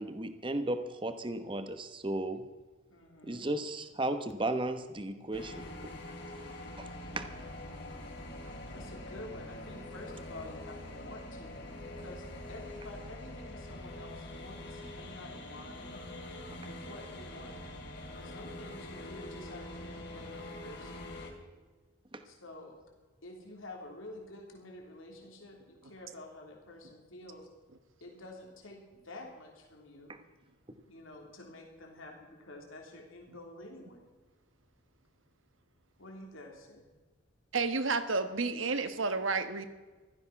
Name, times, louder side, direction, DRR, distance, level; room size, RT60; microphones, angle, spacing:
voice 1, 0.0-2.4 3.2-5.6 6.8-6.9 7.1-7.2 22.1-22.2 30.1-30.2, right 1 dB, 25° right, 9 dB, 1.0 m, -35 dB
voice 2, 2.9-3.5 8.3-16.0 16.6-17.6 18.2-21.0 22.2-22.8 23.2-27.5 28.0-30.1 30.9-34.1 36.0-36.9, left 2 dB, 85° left, 1 dB, 3.3 m, -49 dB
sound 1, 5.3-21.3, left 1 dB, 55° left, 2.9 m, -44 dB
voice 3, 37.5-39.7, right 4 dB, 80° right, 10 dB, 1.3 m, -31 dB
16.0 x 13.5 x 5.9 m, 1.3 s
head